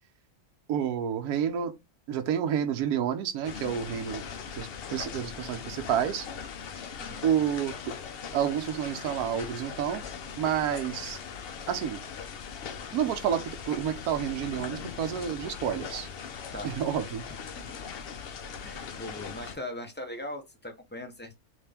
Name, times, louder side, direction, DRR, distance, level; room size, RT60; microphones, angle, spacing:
voice 1, 0.7-1.7 2.1-4.2 4.6-6.3 7.2-7.9 8.3-10.0 10.4-11.2 11.7-12.0 12.9-16.1 16.6-17.2, right 9 dB, 80° right, 1.1 m, -29 dB
sound 1, 3.4-19.6, left 6 dB, 65° left, 0.6 m, -40 dB
voice 2, 16.5-16.8 17.6-17.9 18.6-21.3, left 1 dB, 15° left, 0.4 m, -40 dB
3.6 x 2.6 x 3.3 m
omnidirectional pair, 1.6 m